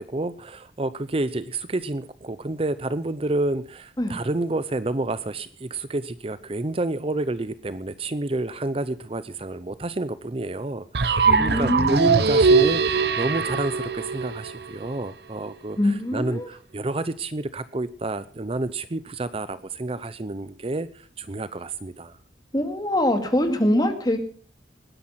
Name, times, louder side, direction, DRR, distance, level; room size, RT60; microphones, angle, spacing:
voice 1, 0.0-22.2, right 2 dB, 30° right, 14 dB, 0.6 m, -29 dB
sound 1, 10.9-14.9, right 4 dB, 65° right, 0.9 m, -21 dB
voice 2, 11.2-12.2 15.8-16.5 22.5-24.2, left 1 dB, 25° left, 6 dB, 2.4 m, -23 dB
20.0 x 10.5 x 5.7 m, 0.42 s
head